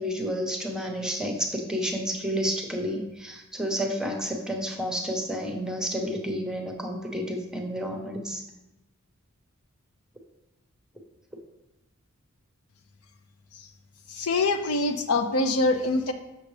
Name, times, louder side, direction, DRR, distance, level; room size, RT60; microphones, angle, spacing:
voice 1, 0.0-8.4, equal, 5° right, 2 dB, 0.8 m, -30 dB
voice 2, 14.1-16.1, left 2 dB, 75° left, 7 dB, 0.6 m, -24 dB
7.5 x 6.2 x 3.2 m, 0.99 s
head